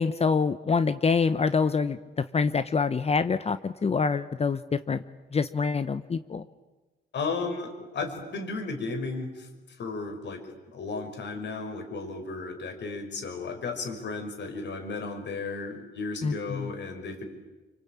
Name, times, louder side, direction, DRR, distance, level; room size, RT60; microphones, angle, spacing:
voice 1, 0.0-5.0 5.3-6.4 16.2-16.7, left 5 dB, 30° left, 12 dB, 0.9 m, -26 dB
voice 2, 7.1-17.2, left 3 dB, 65° left, 5 dB, 5.4 m, -34 dB
27.0 x 24.5 x 8.7 m, 1.2 s
cardioid pair, 90°, 20 cm